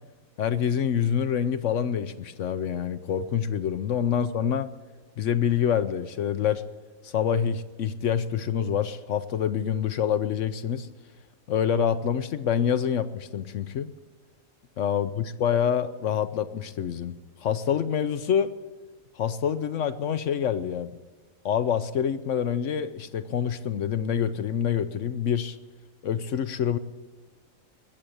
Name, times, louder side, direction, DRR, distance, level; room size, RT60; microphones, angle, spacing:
voice 1, 0.4-4.7 5.2-6.6 7.0-10.9 11.5-13.9 14.8-17.1 17.4-18.5 19.2-20.9 21.4-25.6 26.0-26.8, left 8 dB, 65° left, 12 dB, 1.0 m, -26 dB
21.0 x 7.8 x 8.6 m, 1.4 s
omnidirectional pair, 1.4 m